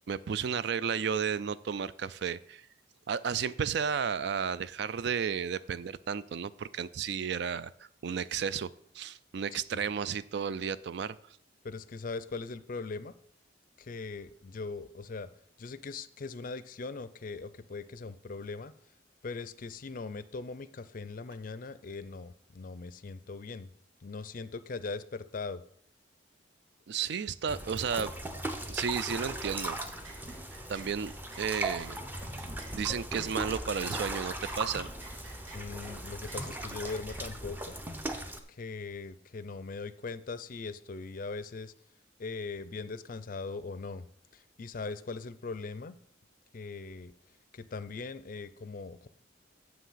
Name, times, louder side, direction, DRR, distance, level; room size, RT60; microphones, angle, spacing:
voice 1, 0.1-2.7 3.1-7.7 8.0-8.7 8.9-11.2 26.9-28.1 28.7-29.8 30.7-32.0 32.4-32.5 32.7-34.9, right 7 dB, 60° right, 16 dB, 0.4 m, -33 dB
voice 2, 11.6-13.1 13.8-15.3 15.6-18.7 19.2-23.7 24.0-25.6 35.5-37.7 38.5-41.7 42.2-44.1 44.3-46.0 46.5-47.1 47.5-49.1, left 4 dB, 45° left, 14 dB, 0.4 m, -40 dB
sound 1, 27.5-38.4, right 1 dB, 10° right, 0.6 m, -38 dB
sound 2, 29.8-37.2, right 2 dB, 85° right, 1.9 m, -53 dB
7.6 x 5.9 x 5.6 m, 0.63 s
head